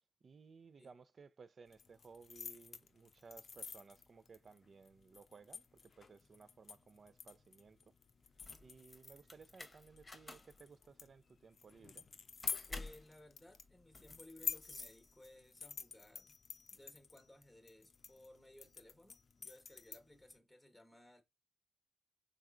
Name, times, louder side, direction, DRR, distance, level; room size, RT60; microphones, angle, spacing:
voice 1, 0.2-7.9 8.6-12.1, right 5 dB, 55° right, 0.4 m, -59 dB
sound 1, 1.7-20.3, left 6 dB, 55° left, 0.5 m, -49 dB
sound 2, 8.3-15.6, left 2 dB, 30° left, 0.9 m, -53 dB
voice 2, 12.7-16.4 16.7-21.2, left 1 dB, ahead, 1.1 m, -60 dB
3.6 x 3.3 x 2.3 m
supercardioid pair, 50°, 0 cm